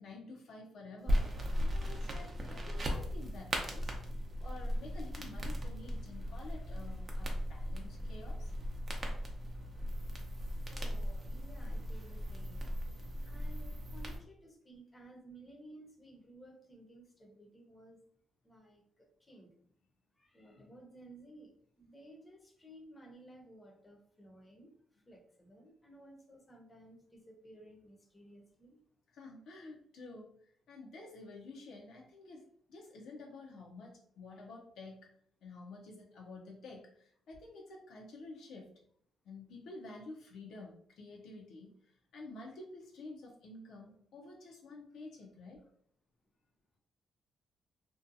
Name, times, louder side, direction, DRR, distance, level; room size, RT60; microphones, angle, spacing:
voice 1, 0.0-3.9 4.4-8.5 20.5-20.7 29.1-35.1 35.4-38.7 39.2-45.6, left 2 dB, 75° left, -1 dB, 0.5 m, -50 dB
sound 1, 1.1-14.2, equal, 40° right, 0.6 m, -37 dB
voice 2, 10.7-12.7 13.3-18.0 18.4-19.5 20.2-24.7 25.1-28.8, right 1 dB, 20° left, 2 dB, 0.7 m, -56 dB
2.6 x 2.2 x 2.5 m, 0.64 s
cardioid pair, 90°, 0 cm